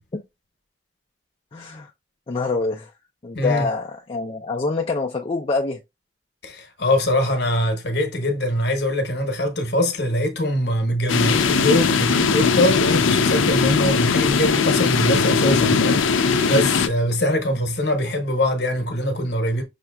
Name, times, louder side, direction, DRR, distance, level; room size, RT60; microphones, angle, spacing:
voice 1, 1.5-1.9 2.3-2.9 3.2-5.8, left 3 dB, 30° left, 0.4 m, -25 dB
voice 2, 3.3-3.7 6.4-19.6, left 1 dB, 55° left, 0.9 m, -23 dB
sound 1, 11.1-16.9, left 5 dB, 85° left, 0.5 m, -19 dB
5.6 x 2.7 x 2.3 m
head